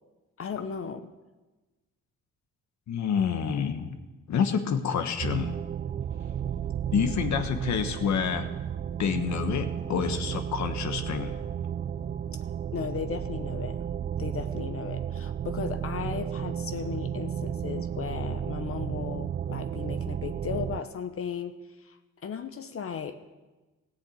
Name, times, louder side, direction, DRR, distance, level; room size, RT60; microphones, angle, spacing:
voice 1, 0.4-1.1 12.7-13.8 14.2-22.0 22.2-23.2, left 7 dB, 50° left, 9 dB, 0.9 m, -36 dB
voice 2, 2.9-4.0 4.3-5.5 6.9-8.5 9.0-11.4, left 7 dB, 65° left, 8 dB, 1.3 m, -28 dB
sound 1, 5.2-20.8, right 9 dB, 30° right, 0.4 m, -33 dB
15.0 x 7.2 x 8.7 m, 1.2 s
cardioid pair, 90°, 30 cm